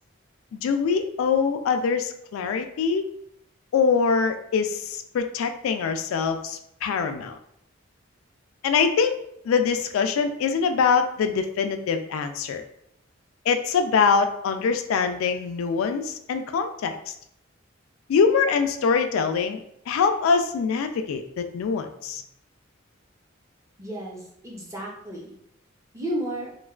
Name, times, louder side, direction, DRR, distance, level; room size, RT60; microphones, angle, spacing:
voice 1, 0.6-3.1 3.7-7.4 8.6-9.2 9.4-12.6 13.5-17.1 18.1-22.2, left 5 dB, 90° left, 10 dB, 0.3 m, -24 dB
voice 2, 23.8-25.3 25.9-26.5, right 1 dB, 15° right, -2 dB, 0.5 m, -33 dB
3.1 x 2.1 x 2.3 m, 0.73 s
head